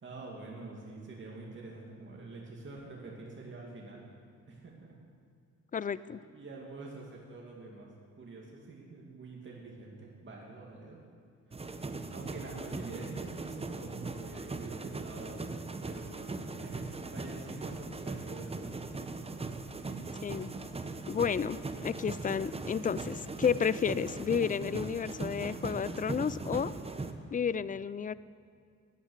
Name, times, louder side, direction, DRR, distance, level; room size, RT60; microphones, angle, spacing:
voice 1, 0.0-4.0 4.5-4.9 5.9-11.0 11.5-11.6 12.1-15.6 15.8-16.8 17.1-18.7 19.7-20.2, right 3 dB, 40° right, -3 dB, 2.3 m, -46 dB
voice 2, 5.7-6.2 20.2-20.5 21.1-26.7 27.3-28.1, left 7 dB, 30° left, 17 dB, 0.4 m, -31 dB
sound 1, 11.5-27.1, right 3 dB, 20° right, 0.8 m, -39 dB
11.5 x 9.8 x 6.5 m, 2.3 s
cardioid pair, 80°, 29 cm